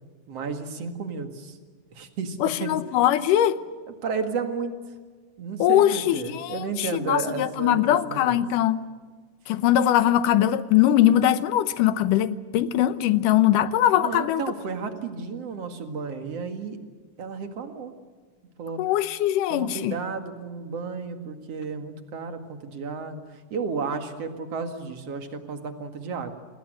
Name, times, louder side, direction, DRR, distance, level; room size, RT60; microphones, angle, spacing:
voice 1, 0.3-1.6 1.9-2.8 4.0-4.7 5.4-8.4 14.0-16.8 17.2-17.9 18.6-18.9 19.5-23.2 23.5-26.3, right 5 dB, 55° right, 2.7 m, -32 dB
voice 2, 2.4-3.6 5.6-8.8 9.5-14.4 18.8-20.0, left 12 dB, 80° left, 2.5 m, -21 dB
27.5 x 21.0 x 7.8 m
omnidirectional pair, 3.7 m